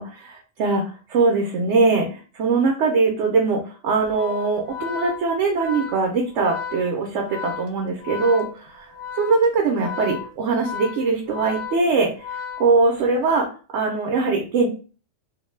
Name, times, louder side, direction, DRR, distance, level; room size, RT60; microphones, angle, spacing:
voice 1, 0.0-13.5 13.7-14.7, right 4 dB, 70° right, 0 dB, 0.9 m, -22 dB
Organ, 4.0-13.2, left 8 dB, 70° left, 0.9 m, -34 dB
2.5 x 2.2 x 3.1 m, 0.36 s
omnidirectional pair, 1.3 m